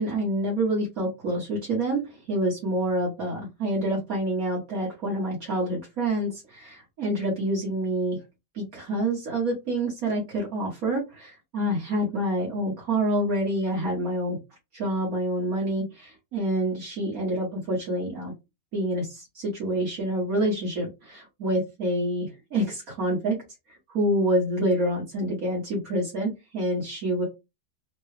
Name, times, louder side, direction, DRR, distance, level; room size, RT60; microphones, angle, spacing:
voice 1, 0.0-8.2 8.5-14.4 14.7-18.3 18.7-23.4 23.7-27.2, right 1 dB, 60° right, -4 dB, 1.7 m, -27 dB
3.8 x 2.2 x 3.2 m, 0.24 s
omnidirectional pair, 1.7 m